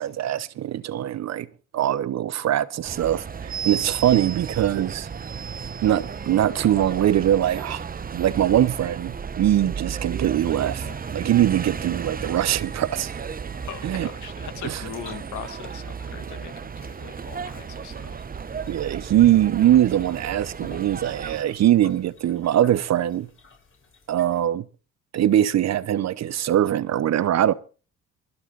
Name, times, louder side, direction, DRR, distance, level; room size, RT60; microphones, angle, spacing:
voice 1, 0.0-1.5 1.7-5.1 5.8-7.8 8.1-13.2 13.8-14.1 14.6-14.8 18.7-23.3 24.1-24.7 25.1-27.5, right 11 dB, 60° right, 0.9 m, -22 dB
sound 1, 2.8-21.4, right 6 dB, 30° right, 0.8 m, -34 dB
sound 2, 10.6-24.4, left 4 dB, 45° left, 7.2 m, -52 dB
voice 2, 13.7-18.2, left 9 dB, 75° left, 1.8 m, -40 dB
23.5 x 8.2 x 4.0 m
cardioid pair, 90°, 30 cm